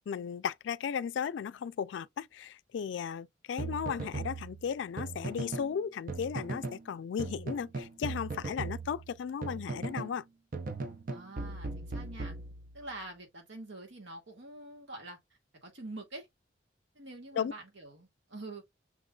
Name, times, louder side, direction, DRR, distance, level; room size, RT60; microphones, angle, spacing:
voice 1, 0.0-10.2 17.4-17.5, left 7 dB, 80° left, 0.3 m, -35 dB
sound 1, 3.6-5.7 6.1-6.8 7.2-10.2 10.5-12.9, right 3 dB, 50° right, 0.6 m, -38 dB
voice 2, 11.1-12.4 12.7-15.2 15.6-16.3 16.9-18.6, right 2 dB, 85° right, 1.9 m, -46 dB
5.9 x 3.8 x 2.3 m
head